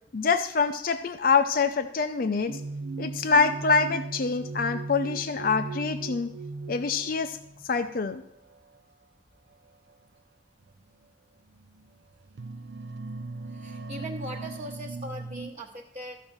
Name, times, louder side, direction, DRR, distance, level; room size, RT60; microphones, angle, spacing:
voice 1, 0.1-2.6 3.0-6.3 6.7-7.4 7.7-8.2, left 4 dB, 55° left, 9 dB, 0.5 m, -25 dB
sound 1, 2.5-7.6 8.5-8.8 9.9-10.0 10.7-10.8 11.5-11.9 12.2-15.5, right 3 dB, 80° right, 0.5 m, -38 dB
voice 2, 13.5-16.2, equal, 35° right, -3 dB, 1.0 m, -40 dB
13.5 x 5.0 x 7.2 m, 0.81 s
head